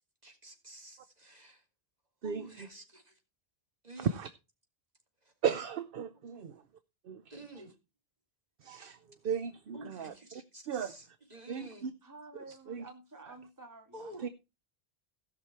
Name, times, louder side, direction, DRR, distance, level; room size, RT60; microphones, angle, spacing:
voice 1, 0.2-1.6 2.2-3.2 3.8-4.2 5.2-5.3 6.3-6.4 7.3-7.7 9.7-11.9 13.9-14.3, right 1 dB, 40° right, 3.0 m, -50 dB
voice 2, 4.0-4.3 5.4-6.6 7.1-7.2 8.6-9.0 9.2-10.1 10.7-10.9 11.5-11.9 12.7-12.8 14.2-14.3, right 7 dB, 65° right, 0.9 m, -35 dB
voice 3, 12.0-14.3, right 2 dB, 20° right, 1.7 m, -51 dB
16.5 x 6.1 x 4.4 m
omnidirectional pair, 1.1 m